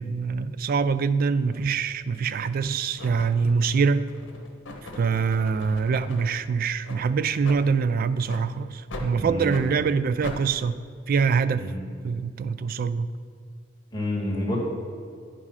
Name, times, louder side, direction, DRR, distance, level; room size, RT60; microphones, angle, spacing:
voice 1, 0.0-4.1 4.8-10.8 11.1-11.7 12.0-13.1, right 5 dB, 50° right, 14 dB, 0.3 m, -24 dB
sound 1, 1.5-1.6 2.3-2.6 3.0-6.4 6.8-7.0 7.4-7.6 8.2-8.4 8.9-9.1 9.5-9.7 10.2-10.4, left 2 dB, 75° left, 1.1 m, -40 dB
voice 2, 9.1-9.6 11.6-11.8 13.9-14.6, left 1 dB, 20° left, -4 dB, 1.9 m, -29 dB
9.6 x 4.9 x 5.5 m, 2.2 s
head